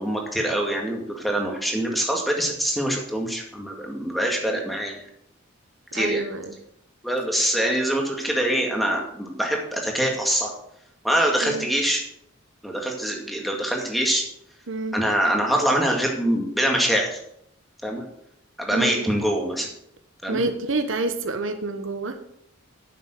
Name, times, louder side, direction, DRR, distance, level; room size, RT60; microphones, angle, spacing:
voice 1, 0.0-5.0 5.9-6.2 7.0-10.5 11.0-12.0 12.6-14.2 14.9-17.2 17.8-18.0 18.6-19.7 20.2-20.4, right 1 dB, ahead, 0 dB, 2.1 m, -24 dB
voice 2, 5.9-6.6 11.4-11.7 14.7-15.0 18.7-19.1 20.3-22.2, right 3 dB, 75° right, 8 dB, 1.1 m, -28 dB
10.0 x 7.4 x 6.5 m, 0.73 s
head